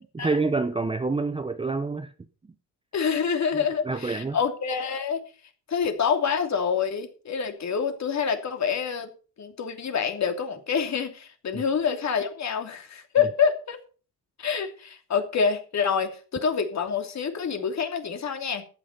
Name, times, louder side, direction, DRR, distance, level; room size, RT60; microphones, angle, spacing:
voice 1, 0.2-2.1 2.4-2.5 3.5-4.4 11.5-11.6, right 3 dB, 15° right, 0.8 m, -27 dB
voice 2, 2.9-5.2 5.7-9.1 9.4-13.8 14.4-18.6, left 6 dB, 40° left, 2.9 m, -27 dB
14.0 x 9.7 x 5.4 m
cardioid pair, 125°, 41 cm